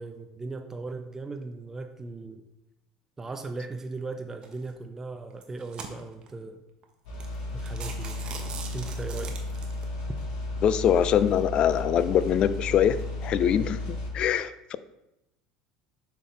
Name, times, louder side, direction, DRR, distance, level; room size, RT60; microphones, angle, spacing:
voice 1, 0.0-2.4 3.2-6.6 7.5-8.2 8.7-9.4, right 3 dB, 20° right, 6 dB, 0.5 m, -38 dB
sound 1, 4.4-4.7 5.3-6.3 6.8-6.9 7.2-7.4 7.7-9.8, right 6 dB, 45° right, 1.0 m, -41 dB
sound 2, 7.1-14.1, left 2 dB, 70° left, 1.6 m, -34 dB
voice 2, 10.6-14.8, left 9 dB, 45° left, 15 dB, 0.3 m, -24 dB
6.7 x 3.8 x 3.7 m, 0.90 s
hypercardioid pair, 80°, 2 cm